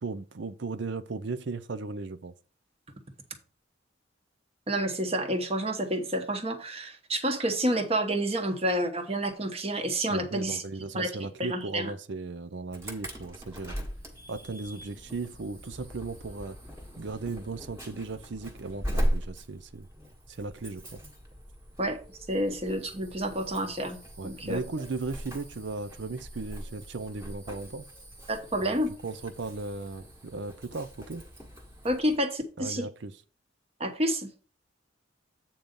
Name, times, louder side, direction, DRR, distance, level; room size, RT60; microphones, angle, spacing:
voice 1, 0.0-2.3 10.1-13.8 14.3-16.6 17.0-19.9 20.3-21.0 24.2-27.9 28.6-31.2 32.6-33.2, right 3 dB, 65° right, 0.5 m, -36 dB
voice 2, 4.7-10.6 10.9-11.9 21.8-22.0 22.3-24.6 28.3-28.9 31.8-32.9 33.8-34.3, right 1 dB, 30° right, 1.1 m, -29 dB
Insect / Alarm, 12.7-32.2, equal, 15° right, 1.4 m, -39 dB
8.6 x 3.9 x 5.3 m
head